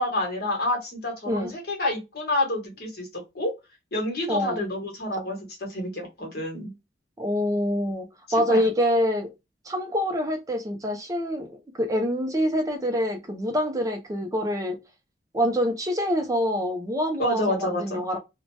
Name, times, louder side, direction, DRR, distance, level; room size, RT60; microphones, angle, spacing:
voice 1, 0.0-3.5 3.9-6.7 8.3-8.6 17.2-18.0, left 1 dB, 60° left, 1.2 m, -28 dB
voice 2, 4.3-4.6 7.2-9.3 9.7-11.5 11.8-14.8 15.3-18.2, equal, 20° right, 0.4 m, -25 dB
2.6 x 2.1 x 3.1 m
head